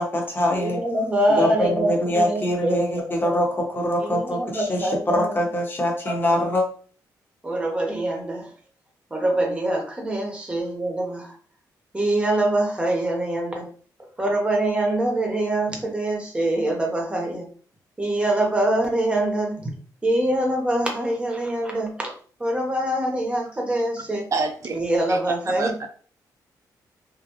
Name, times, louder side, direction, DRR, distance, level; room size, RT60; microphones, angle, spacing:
voice 1, 0.0-0.8 1.4-6.6, left 1 dB, 30° left, 1 dB, 1.0 m, -23 dB
voice 2, 0.5-3.3 4.0-5.4 6.2-6.4 7.4-8.5 9.1-11.3 11.9-13.7 14.2-17.5 18.0-19.7 20.0-22.1 22.4-24.3 24.7-25.9, right 1 dB, 15° right, 1 dB, 1.1 m, -24 dB
voice 3, 24.3-24.8 25.1-25.2 25.6-25.9, right 4 dB, 45° right, 6 dB, 0.6 m, -26 dB
3.2 x 2.7 x 3.0 m, 0.43 s
cardioid pair, 110°, 7 cm